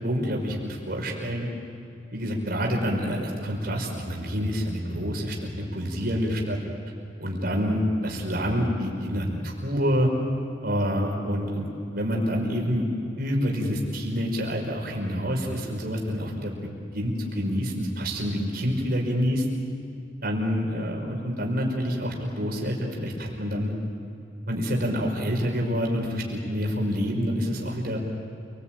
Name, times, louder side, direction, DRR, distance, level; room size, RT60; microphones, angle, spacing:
voice 1, 0.0-1.5 2.1-6.6 7.2-10.1 10.6-12.8 13.2-19.5 20.2-23.7 24.5-28.0, equal, 55° right, 0 dB, 5.4 m, -27 dB
29.0 x 20.5 x 9.1 m, 2.7 s
head